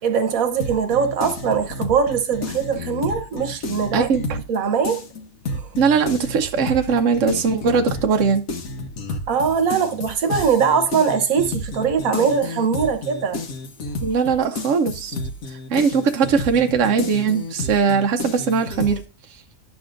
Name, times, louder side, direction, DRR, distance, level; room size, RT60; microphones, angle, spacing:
voice 1, 0.0-4.1 4.5-5.1 5.5-5.7 9.3-13.4, right 6 dB, 90° right, 1.4 m, -21 dB
sound 1, 0.6-4.6 4.8-19.0, left 2 dB, 90° left, 1.5 m, -31 dB
voice 2, 3.9-4.2 5.8-8.5 14.0-15.1 15.7-19.0, right 6 dB, 65° right, 1.1 m, -20 dB
10.5 x 7.7 x 2.5 m
omnidirectional pair, 1.4 m